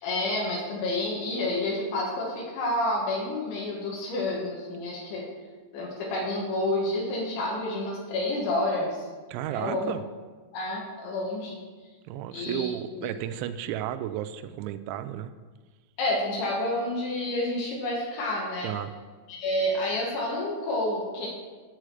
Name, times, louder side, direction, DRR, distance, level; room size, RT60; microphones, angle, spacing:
voice 1, 0.0-5.3 5.7-9.1 9.5-9.9 10.5-11.6 12.3-13.1 16.0-18.7 19.3-21.3, left 1 dB, 80° left, -3 dB, 3.8 m, -29 dB
voice 2, 9.3-10.0 12.1-15.3 18.6-18.9, right 12 dB, 90° right, 11 dB, 2.9 m, -33 dB
9.7 x 4.9 x 7.6 m, 1.4 s
omnidirectional pair, 5.3 m